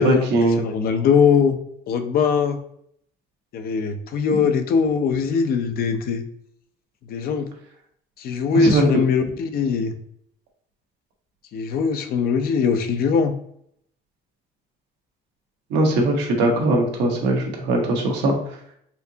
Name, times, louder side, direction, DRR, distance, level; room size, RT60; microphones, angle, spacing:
voice 1, 0.0-0.6 4.3-4.4 8.5-8.8 15.7-18.3, right 2 dB, 90° right, 1 dB, 1.0 m, -20 dB
voice 2, 0.6-1.6 1.9-2.6 3.5-6.2 7.1-7.5 8.2-9.9 11.5-13.3, left 6 dB, 60° left, 8 dB, 0.5 m, -21 dB
4.3 x 2.8 x 2.7 m, 0.69 s
cardioid pair, 110°, 17 cm